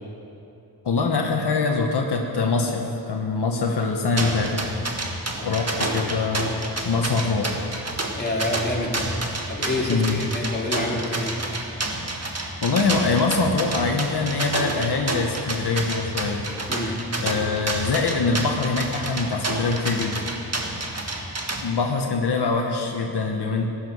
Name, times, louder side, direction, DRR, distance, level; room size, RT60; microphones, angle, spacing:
voice 1, 0.8-4.6 5.4-6.5 6.8-7.6 9.9-10.3 12.6-16.5 17.2-20.2 21.6-23.7, left 4 dB, 80° left, 2 dB, 1.1 m, -24 dB
sound 1, 4.2-21.6, right 2 dB, 40° right, 1.6 m, -29 dB
voice 2, 5.3-5.6 8.2-9.1 9.5-11.3 16.7-17.0, left 1 dB, 25° left, -3 dB, 2.7 m, -28 dB
14.5 x 10.0 x 6.3 m, 2.7 s
cardioid pair, 55°, 39 cm